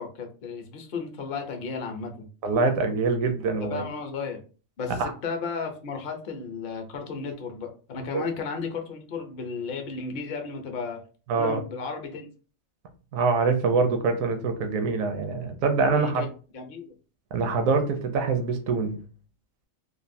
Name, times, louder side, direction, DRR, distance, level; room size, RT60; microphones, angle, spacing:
voice 1, 0.0-2.3 3.6-4.4 4.8-11.0 11.3-12.3 15.9-16.9, left 5 dB, 50° left, 4 dB, 0.7 m, -34 dB
voice 2, 2.4-3.8 5.0-5.1 8.1-8.2 11.3-11.6 13.1-16.2 17.3-19.0, right 4 dB, 85° right, 6 dB, 1.1 m, -24 dB
3.2 x 2.4 x 2.6 m, 0.37 s
omnidirectional pair, 1.4 m